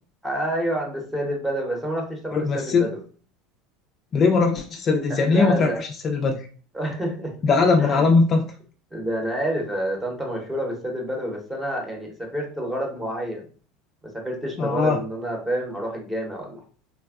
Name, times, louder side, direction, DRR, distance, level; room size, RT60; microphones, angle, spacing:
voice 1, 0.2-3.0 5.1-5.8 6.7-7.4 7.8-8.1 8.9-13.4 14.1-16.7, right 1 dB, 5° right, 0 dB, 0.8 m, -28 dB
voice 2, 2.3-2.9 4.1-6.5 7.4-8.4 14.6-15.0, left 4 dB, 30° left, 3 dB, 0.3 m, -20 dB
3.3 x 2.2 x 2.3 m, 0.40 s
supercardioid pair, 145°, 0 cm